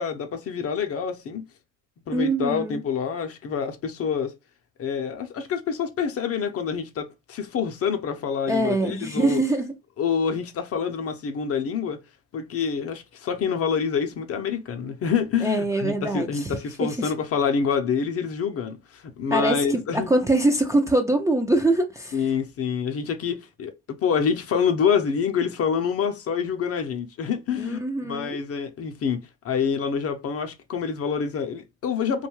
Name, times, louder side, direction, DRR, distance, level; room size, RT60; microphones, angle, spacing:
voice 1, 0.0-1.5 2.1-4.3 4.8-9.4 10.0-12.0 12.3-20.1 22.1-32.3, left 6 dB, 45° left, 0.6 m, -27 dB
voice 2, 2.1-2.8 8.5-9.7 15.4-16.5 16.8-17.1 19.3-22.2 27.5-28.4, right 1 dB, 10° right, 0.4 m, -23 dB
2.6 x 2.3 x 2.9 m
supercardioid pair, 90°, 34 cm